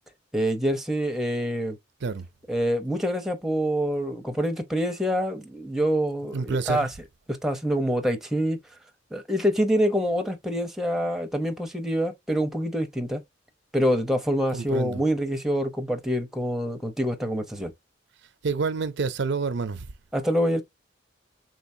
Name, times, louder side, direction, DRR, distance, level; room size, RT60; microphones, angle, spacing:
voice 1, 0.3-1.8 2.5-6.9 7.3-8.6 9.1-13.2 13.7-17.7 20.1-20.6, equal, ahead, 0.8 m, -26 dB
voice 2, 6.3-6.9 14.5-15.0 18.4-19.9, right 4 dB, 65° right, 0.6 m, -28 dB
4.6 x 3.9 x 2.7 m
head